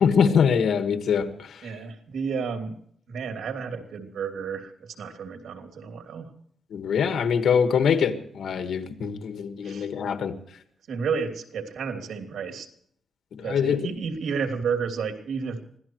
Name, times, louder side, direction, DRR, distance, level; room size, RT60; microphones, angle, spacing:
voice 1, 0.0-1.6 6.7-10.3 13.4-13.8, left 7 dB, 75° left, 1.6 m, -23 dB
voice 2, 1.6-2.8 3.1-6.3 9.6-9.9 10.9-12.7 13.4-15.6, right 6 dB, 80° right, 3.0 m, -31 dB
25.0 x 17.5 x 3.1 m
wide cardioid pair, 125°, 0 cm